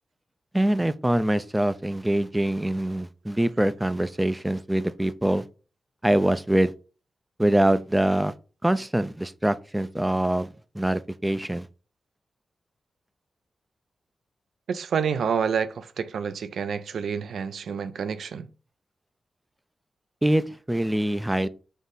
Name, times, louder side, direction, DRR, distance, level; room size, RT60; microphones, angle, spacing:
voice 1, 0.5-5.4 6.0-6.7 7.4-8.3 8.6-10.5 10.7-11.7 20.2-21.5, right 1 dB, 15° right, 0.4 m, -24 dB
voice 2, 14.7-18.5, right 6 dB, 75° right, 0.4 m, -28 dB
5.3 x 2.0 x 3.9 m
supercardioid pair, 40°, 0 cm